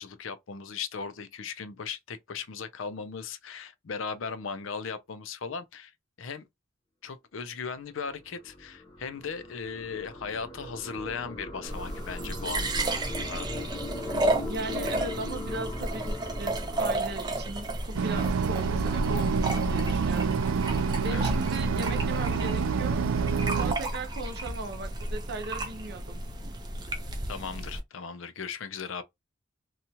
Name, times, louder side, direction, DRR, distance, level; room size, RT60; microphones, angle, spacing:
voice 1, 0.0-5.9 6.2-6.4 7.0-12.7 13.2-13.5 21.1-21.3 27.3-29.0, left 5 dB, 70° left, 0.5 m, -37 dB
sound 1, 7.9-18.4, left 2 dB, 20° left, 0.7 m, -40 dB
sound 2, 11.6-27.8, right 2 dB, 20° right, 0.5 m, -33 dB
voice 2, 14.5-23.1 23.5-26.2, right 2 dB, 55° right, 0.7 m, -38 dB
sound 3, 18.0-23.8, right 5 dB, 85° right, 0.3 m, -27 dB
2.9 x 2.3 x 2.8 m
head